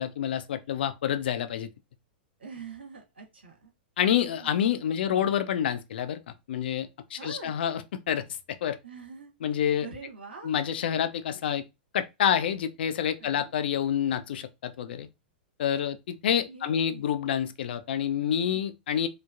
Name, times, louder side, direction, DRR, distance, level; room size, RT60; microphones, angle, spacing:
voice 1, 0.0-1.7 4.0-8.2 8.6-8.8 9.4-9.9 10.4-11.6 11.9-15.1 15.6-19.1, left 9 dB, 70° left, 0.4 m, -28 dB
voice 2, 2.4-3.7 4.3-4.5 5.0-5.4 7.1-7.5 8.8-9.3 9.8-10.5 13.2-13.5 16.5-17.1 18.3-18.6, right 5 dB, 90° right, 1.3 m, -44 dB
3.1 x 2.0 x 2.3 m
hypercardioid pair, 110°, 6 cm